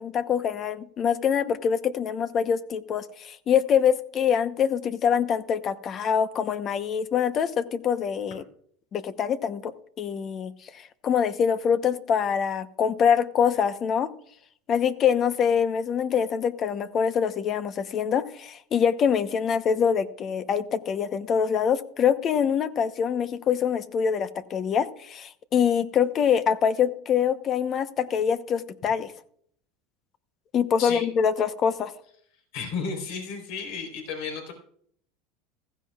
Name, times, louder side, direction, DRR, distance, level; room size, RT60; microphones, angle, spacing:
voice 1, 0.0-8.4 8.9-9.7 10.0-14.1 14.7-29.1 30.5-31.9, left 7 dB, 40° left, 12 dB, 0.9 m, -24 dB
voice 2, 32.5-34.5, left 5 dB, 70° left, 3 dB, 3.9 m, -33 dB
15.5 x 14.5 x 2.4 m, 0.62 s
supercardioid pair, 105°, 0 cm